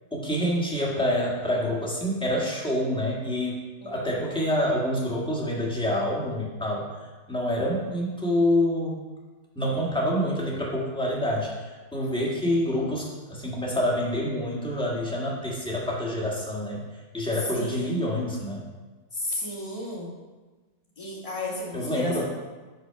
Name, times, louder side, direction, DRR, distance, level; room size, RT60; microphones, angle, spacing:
voice 1, 0.1-3.6 3.8-9.0 9.5-16.8 17.1-18.6 21.7-22.2, left 1 dB, 5° left, -4 dB, 1.4 m, -27 dB
voice 2, 3.8-4.4 17.5-18.0 19.1-20.1 21.0-22.2, left 1 dB, 20° left, -4 dB, 1.6 m, -33 dB
8.0 x 4.1 x 5.7 m, 1.3 s
omnidirectional pair, 1.7 m